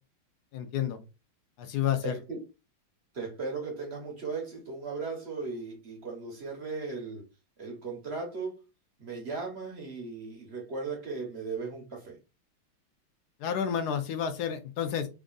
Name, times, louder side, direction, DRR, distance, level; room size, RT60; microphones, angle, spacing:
voice 1, 0.5-1.0 1.6-2.2 13.4-15.1, left 9 dB, 70° left, 9 dB, 1.0 m, -30 dB
voice 2, 2.0-2.4 3.1-7.2 7.6-8.6 9.0-12.2, right 4 dB, 50° right, 1 dB, 0.7 m, -37 dB
3.5 x 2.5 x 3.7 m, 0.28 s
omnidirectional pair, 2.2 m